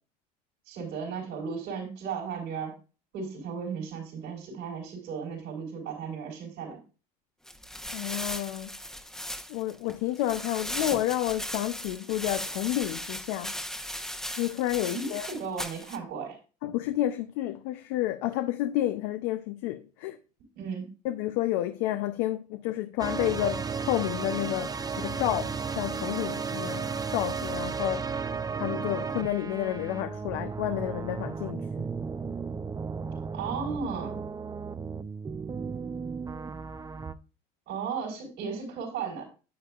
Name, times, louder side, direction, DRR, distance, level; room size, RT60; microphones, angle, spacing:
voice 1, 0.7-2.7 3.1-6.8 14.9-16.4 20.6-20.9 33.3-34.2 37.7-39.3, right 6 dB, 70° right, 3.9 m, -35 dB
sound 1, 7.5-16.0, equal, 5° left, 0.9 m, -37 dB
voice 2, 7.9-8.8 9.5-13.6 13.9-15.3 16.6-20.2 21.0-28.1 28.6-31.9, left 14 dB, 80° left, 0.6 m, -30 dB
sound 2, 23.0-37.1, right 5 dB, 20° right, 0.6 m, -34 dB
9.5 x 8.2 x 2.4 m
supercardioid pair, 75°, 19 cm